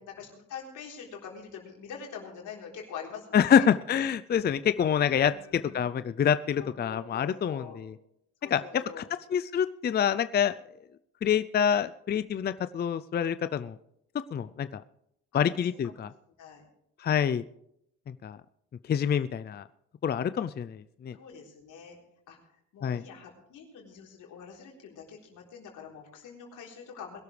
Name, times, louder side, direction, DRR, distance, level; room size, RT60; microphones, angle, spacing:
voice 1, 0.0-3.7 5.3-5.8 6.6-7.8 8.4-9.1 15.3-15.4 15.8-16.0 16.4-16.6 21.1-22.0 22.3-22.4 22.7-27.2, left 6 dB, 85° left, 0 dB, 3.9 m, -45 dB
voice 2, 3.3-7.9 8.5-9.0 9.3-10.5 11.2-13.8 14.3-14.8 15.3-16.1 17.0-17.4 18.2-18.4 18.9-19.6 20.0-21.1 22.8-23.0, left 8 dB, 35° left, 13 dB, 0.5 m, -26 dB
22.0 x 12.0 x 3.3 m, 0.75 s
cardioid pair, 90°, 30 cm